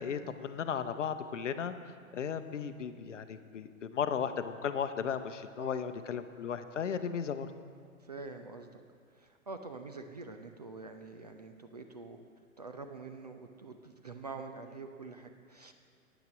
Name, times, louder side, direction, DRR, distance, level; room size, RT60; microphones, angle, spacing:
voice 1, 0.0-7.5, left 7 dB, 60° left, 10 dB, 0.8 m, -35 dB
voice 2, 8.0-8.7 9.1-12.2 12.6-15.7, right 3 dB, 30° right, 6 dB, 0.4 m, -46 dB
9.3 x 9.0 x 6.1 m, 2.2 s
figure-of-eight pair, 120°, 42 cm